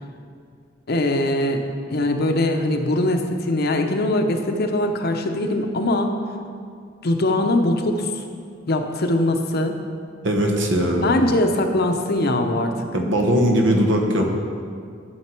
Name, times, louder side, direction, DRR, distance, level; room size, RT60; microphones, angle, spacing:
voice 1, 0.9-1.6 1.9-6.1 7.0-8.2 8.7-9.8 11.0-12.9, left 1 dB, 55° left, 5 dB, 0.8 m, -21 dB
voice 2, 10.2-11.1 12.9-14.3, equal, 70° right, 2 dB, 1.2 m, -19 dB
12.0 x 6.5 x 4.5 m, 2.2 s
head